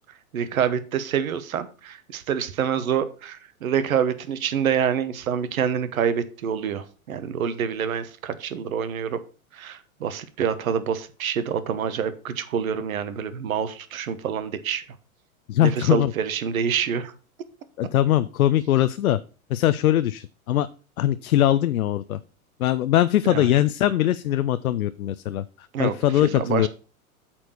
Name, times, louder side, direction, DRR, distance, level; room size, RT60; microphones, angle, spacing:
voice 1, 0.3-9.2 9.5-14.8 15.6-17.1 23.2-23.5 25.7-26.7, right 8 dB, 70° right, 13 dB, 1.2 m, -26 dB
voice 2, 15.5-16.1 17.8-19.2 19.5-20.7 21.0-22.2 22.6-26.7, left 12 dB, 75° left, 13 dB, 0.6 m, -21 dB
8.5 x 4.5 x 6.5 m, 0.37 s
hypercardioid pair, 100°, 43 cm